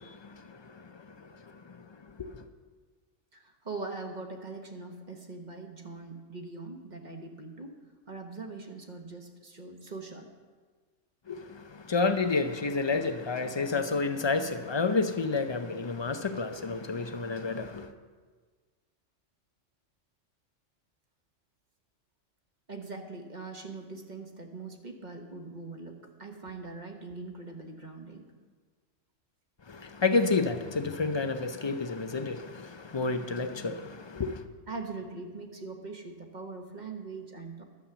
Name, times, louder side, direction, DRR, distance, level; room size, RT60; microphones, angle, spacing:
voice 1, 0.0-2.4 11.3-17.9 29.7-34.4, left 4 dB, 50° left, 0.3 m, -30 dB
voice 2, 3.3-7.7 8.1-10.3 22.7-28.3 34.7-37.6, right 3 dB, 40° right, 1.2 m, -42 dB
11.5 x 7.2 x 6.9 m
omnidirectional pair, 1.3 m